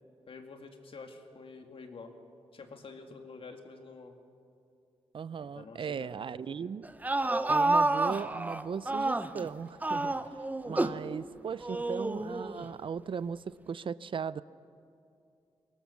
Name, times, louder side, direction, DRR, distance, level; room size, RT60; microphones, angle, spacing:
voice 1, 0.3-2.1 2.5-4.2 5.4-6.1 6.5-6.7 10.0-10.2, left 4 dB, 60° left, 5 dB, 2.3 m, -48 dB
voice 2, 5.1-6.9 7.5-10.2 10.7-14.4, right 6 dB, 55° right, 17 dB, 0.5 m, -37 dB
sound 1, 6.8-9.5 9.8-11.0 11.6-12.6, right 2 dB, 15° right, 0.7 m, -29 dB
23.0 x 18.5 x 7.1 m, 2.6 s
cardioid pair, 95°, 11 cm